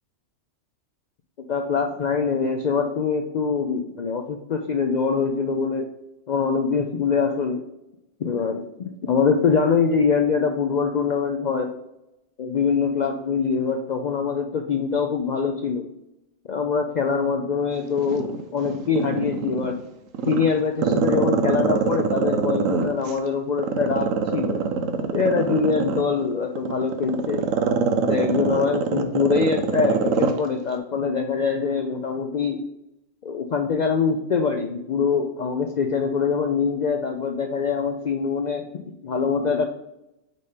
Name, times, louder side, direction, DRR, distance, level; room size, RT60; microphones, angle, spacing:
voice 1, 1.5-5.9 6.3-7.6 8.2-11.7 12.4-15.9 16.5-19.8 20.3-24.6 25.1-27.4 28.1-32.6 33.2-39.7, left 5 dB, 75° left, 4 dB, 0.4 m, -24 dB
Growling, 18.0-19.7 20.1-23.1 23.6-30.4 30.7-30.8, right 6 dB, 85° right, 1.1 m, -23 dB
5.3 x 4.2 x 4.9 m, 0.91 s
omnidirectional pair, 1.3 m